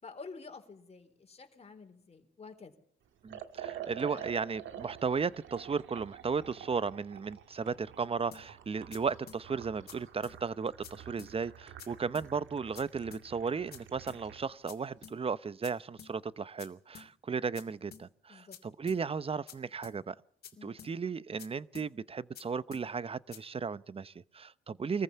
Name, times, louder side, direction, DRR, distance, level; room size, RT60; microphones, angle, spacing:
voice 1, 0.0-2.7 4.1-4.2 18.3-18.6 20.6-20.9, left 4 dB, 30° left, 3.9 m, -49 dB
voice 2, 3.2-20.1 20.6-25.0, right 5 dB, 30° right, 0.8 m, -35 dB
Liquid, 3.3-14.5, right 10 dB, 75° right, 1.9 m, -48 dB
sound 1, 8.3-8.5 8.9-9.0 9.3-9.4 9.9-10.0 10.2-10.4 10.8-10.9 11.2-11.3 11.8-11.9 12.2-12.3 12.8-12.9 13.1-13.3 13.7-13.8 14.1-14.2 14.7-14.8 15.0-15.2 15.6-15.7 16.0-16.1 16.6-16.7 17.0-17.1 17.6-17.7 17.9-18.1 18.5-18.6 18.9-19.0 19.5-19.6 19.8-20.0 20.4-20.5 20.8-20.9 21.4-21.5 21.8-21.9 22.4-22.5 22.7-22.9 23.3-23.4, left 7 dB, 50° left, 3.0 m, -49 dB
24.0 x 14.5 x 8.5 m
cardioid pair, 90°, 20 cm